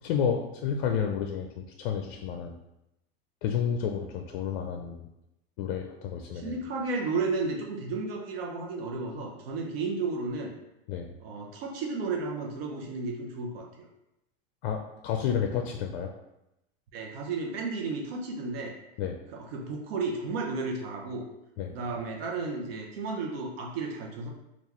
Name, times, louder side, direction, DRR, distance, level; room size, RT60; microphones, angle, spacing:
voice 1, 0.0-2.6 3.4-5.1 5.6-6.6 10.9-11.1 14.6-16.1 19.0-19.1 21.6-21.7, left 7 dB, 60° left, 4 dB, 0.4 m, -30 dB
voice 2, 6.3-10.5 11.2-13.9 16.9-18.8 19.3-21.3 21.7-24.3, right 3 dB, 75° right, 1 dB, 0.7 m, -33 dB
3.7 x 2.4 x 3.0 m, 0.87 s
hypercardioid pair, 115°, 30 cm